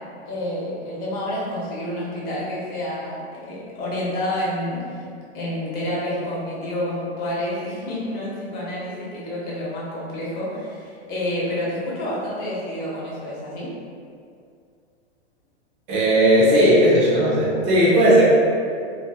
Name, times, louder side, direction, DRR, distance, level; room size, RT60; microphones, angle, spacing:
voice 1, 0.3-5.0 5.3-13.7, left 1 dB, 30° left, -6 dB, 0.7 m, -29 dB
voice 2, 15.9-18.2, equal, 15° right, -7 dB, 0.3 m, -16 dB
2.5 x 2.5 x 2.2 m, 2.3 s
hypercardioid pair, 135°, 33 cm